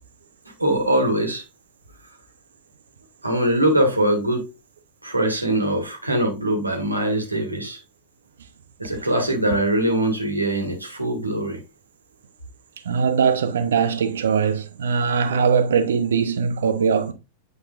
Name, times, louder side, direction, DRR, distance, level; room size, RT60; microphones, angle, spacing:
voice 1, 0.6-1.4 3.2-4.4 5.0-7.8 8.8-11.6, right 1 dB, 85° right, 1.7 m, -22 dB
voice 2, 12.8-17.1, right 6 dB, 65° right, 0.8 m, -21 dB
8.7 x 4.8 x 2.4 m
figure-of-eight pair, 90°, 0 cm